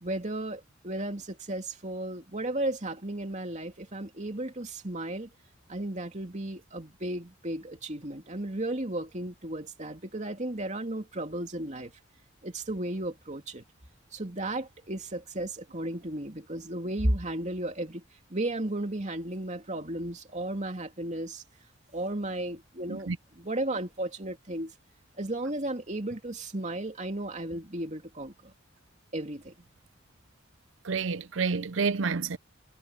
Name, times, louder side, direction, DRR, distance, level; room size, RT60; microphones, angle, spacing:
voice 1, 0.0-5.3 5.7-11.9 12.4-13.6 14.1-18.0 18.3-21.4 21.9-23.1 23.4-24.7 25.2-28.5 29.1-29.5, right 1 dB, 35° right, 2.9 m, -34 dB
voice 2, 30.8-32.4, right 5 dB, 70° right, 0.6 m, -29 dB
head